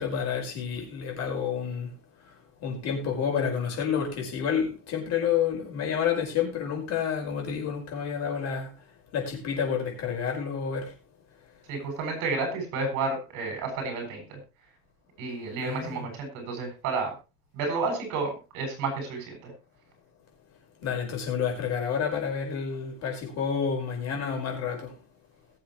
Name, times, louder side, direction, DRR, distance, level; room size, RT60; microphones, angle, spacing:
voice 1, 0.0-1.9 2.6-8.7 9.1-10.9 15.6-16.1 20.8-24.9, left 7 dB, 45° left, 5.3 m, -29 dB
voice 2, 11.7-14.4 15.2-17.1 17.5-19.5, right 3 dB, 55° right, 7.7 m, -31 dB
21.5 x 7.6 x 3.2 m
cardioid pair, 160°, 36 cm